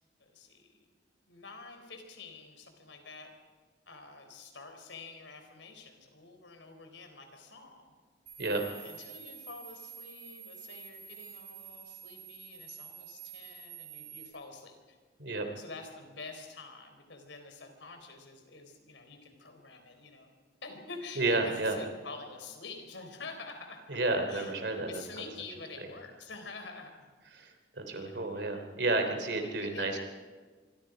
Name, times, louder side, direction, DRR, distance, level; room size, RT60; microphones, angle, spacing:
voice 1, 0.2-0.9 1.3-3.3 3.9-7.9 8.5-15.0 15.3-20.3 20.6-24.0 24.3-24.5 24.9-27.1 27.9-28.5 29.3-30.0, left 4 dB, 90° left, 5 dB, 4.3 m, -47 dB
sound 1, 8.3-14.3, right 7 dB, 35° right, 6.5 m, -48 dB
voice 2, 21.2-21.8 23.9-25.0 27.3-30.0, right 2 dB, 65° right, 5 dB, 3.3 m, -31 dB
25.0 x 25.0 x 5.1 m, 1.4 s
head